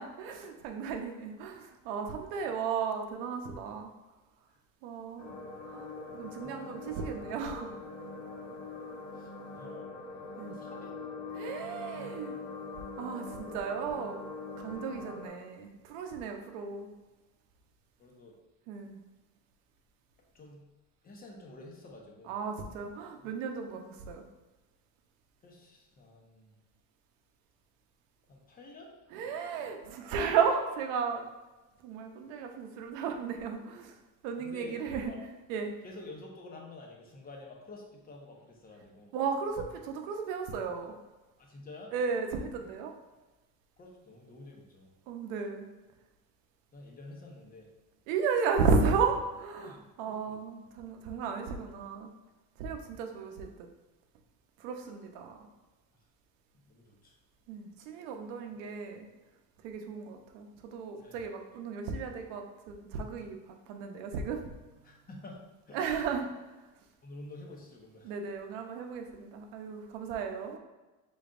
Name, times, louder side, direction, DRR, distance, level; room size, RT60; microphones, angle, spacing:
voice 1, 0.0-3.9 4.8-5.3 5.6-7.7 10.4-10.6 11.3-12.3 13.0-14.3 14.6-16.9 18.7-19.0 22.3-24.3 29.1-31.2 31.8-34.0 34.2-35.1 35.5-35.7 39.1-40.9 41.9-42.9 45.1-45.7 48.1-52.1 52.6-53.7 54.6-55.5 57.5-59.1 59.6-65.0 65.7-66.3 68.0-70.6, right 5 dB, 85° right, 4 dB, 0.8 m, -34 dB
sound 1, 5.2-15.3, left 3 dB, 90° left, 1.3 m, -43 dB
voice 2, 6.4-7.0 9.1-9.9 10.5-10.9 11.9-12.5 18.0-18.4 20.3-20.7 21.0-22.3 23.2-23.3 25.4-26.5 28.3-28.9 34.4-35.2 35.8-39.1 41.4-41.9 43.1-43.2 43.8-44.9 46.7-47.7 49.6-50.4 56.7-57.2 61.0-61.2 64.8-65.4 65.7-66.0 67.0-68.1, left 2 dB, 25° left, 0 dB, 0.9 m, -50 dB
5.2 x 3.9 x 2.5 m, 1.2 s
cardioid pair, 130°, 37 cm